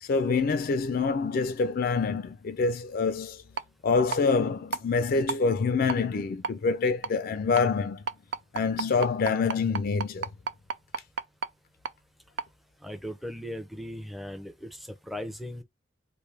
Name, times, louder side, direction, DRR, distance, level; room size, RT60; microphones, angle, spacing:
voice 1, 0.0-3.4 3.8-8.0 8.5-10.3, left 4 dB, 55° left, 0.4 m, -26 dB
sound 1, 3.6-3.7 4.1-4.2 4.7-4.8 5.3-5.4 5.9-6.0 6.4-6.5 7.0-7.1 7.6-7.7 8.1-11.5 11.8-11.9 12.4-12.5, right 6 dB, 75° right, 0.4 m, -31 dB
voice 2, 12.8-14.8 15.1-15.6, equal, ahead, 0.5 m, -38 dB
3.2 x 2.6 x 3.2 m
head